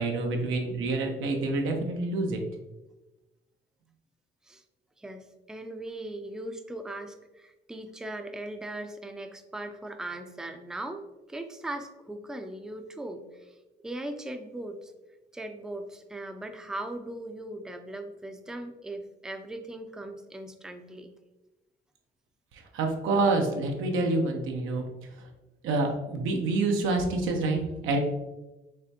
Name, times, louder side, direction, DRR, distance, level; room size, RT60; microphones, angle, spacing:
voice 1, 0.0-2.4 22.7-24.9 25.6-28.0, right 3 dB, 90° right, 3 dB, 0.7 m, -27 dB
voice 2, 5.0-13.6 13.8-14.9 15.3-21.1, right 1 dB, 5° right, 6 dB, 0.4 m, -39 dB
5.0 x 3.3 x 2.8 m, 1.1 s
cardioid pair, 90°, 20 cm